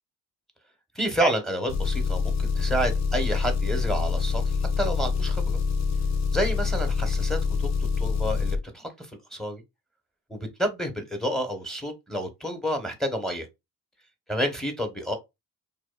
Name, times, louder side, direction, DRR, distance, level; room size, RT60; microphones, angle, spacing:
voice 1, 0.9-5.6 6.3-9.6 10.3-13.5 14.3-15.1, equal, ahead, 0.9 m, -29 dB
Engine, 1.7-8.6, left 5 dB, 45° left, 0.5 m, -26 dB
2.5 x 2.2 x 2.3 m
supercardioid pair, 55°, 40 cm